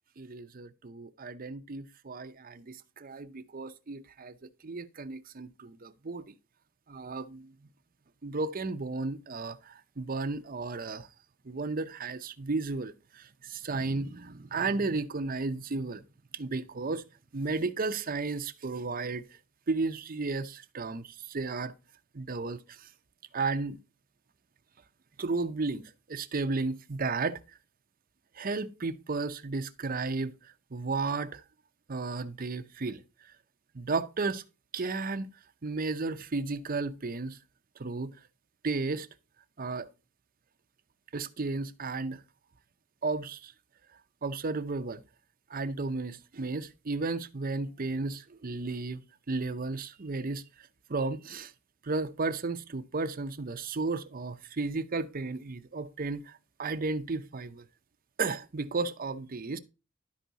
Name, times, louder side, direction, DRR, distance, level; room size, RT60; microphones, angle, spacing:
voice 1, 0.2-6.3 6.9-7.7 8.2-11.1 11.4-16.0 16.3-17.0 17.3-19.4 19.7-21.7 22.1-22.9 23.3-23.8 25.2-27.6 28.3-31.4 31.9-33.4 33.7-34.4 34.7-37.4 37.8-38.3 38.6-39.1 39.6-39.9 41.1-42.2 43.0-43.5 44.2-45.0 45.5-49.0 49.3-51.5 51.8-57.7 58.2-59.6, right 3 dB, 45° right, 0.7 m, -34 dB
12.0 x 4.6 x 4.0 m
head